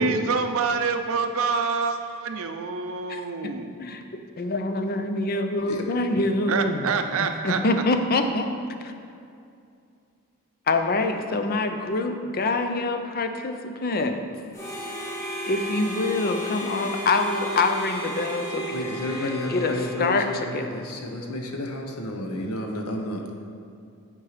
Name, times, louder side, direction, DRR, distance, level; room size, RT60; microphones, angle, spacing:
voice 1, 0.0-3.7 6.5-7.6, right 5 dB, 65° right, 7 dB, 0.5 m, -26 dB
voice 2, 3.1-3.5 3.8-4.0 4.4-6.9 7.4-8.5 8.8-8.9 10.7-14.2 15.4-19.0 19.5-19.7 20.0-20.3 20.5-20.8, left 2 dB, 45° left, 7 dB, 0.5 m, -25 dB
Harmonica, 14.5-20.9, equal, 15° left, 1.1 m, -34 dB
voice 3, 18.7-23.3, left 1 dB, 85° left, 2 dB, 1.0 m, -31 dB
8.7 x 4.6 x 4.9 m, 2.4 s
head